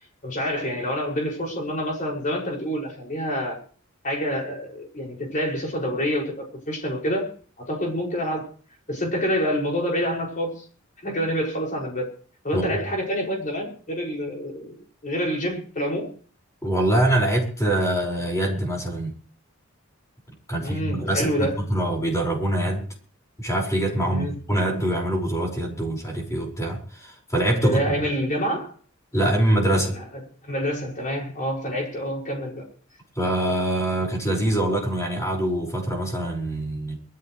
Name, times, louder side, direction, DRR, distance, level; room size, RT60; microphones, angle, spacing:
voice 1, 0.2-3.6 4.0-7.3 7.6-8.5 8.9-10.6 11.0-12.1 12.4-14.8 15.0-16.1 20.5-21.6 24.0-24.3 27.6-28.7 29.8-30.0 30.4-32.7, equal, 40° left, -1 dB, 6.3 m, -27 dB
voice 2, 16.6-19.1 20.5-22.8 23.4-27.8 29.1-29.9 33.2-37.0, right 1 dB, 15° left, 0 dB, 5.5 m, -24 dB
22.5 x 14.0 x 3.3 m, 0.42 s
head